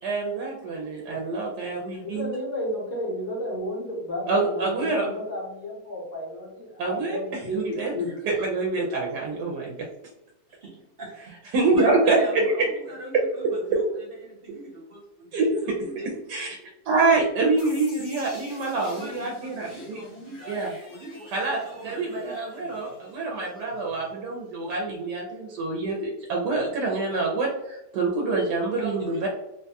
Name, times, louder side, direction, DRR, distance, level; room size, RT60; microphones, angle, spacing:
voice 1, 0.0-2.3 4.3-5.1 6.8-7.9 8.3-9.9 11.5-12.4 13.7-13.8 15.3-15.5 16.3-16.5 16.8-20.0 20.5-20.7 21.3-21.6 21.8-29.3, right 3 dB, 90° right, -2 dB, 1.2 m, -26 dB
voice 2, 2.0-8.1, left 1 dB, 75° left, -5 dB, 1.7 m, -32 dB
voice 3, 10.5-11.2 11.4-16.2 18.8-21.3 21.6-22.2 28.8-29.2, right 1 dB, 60° right, -3 dB, 0.6 m, -40 dB
sound 1, 17.6-24.4, left 2 dB, 50° left, 1.1 m, -48 dB
3.5 x 2.2 x 2.7 m, 0.90 s
omnidirectional pair, 1.7 m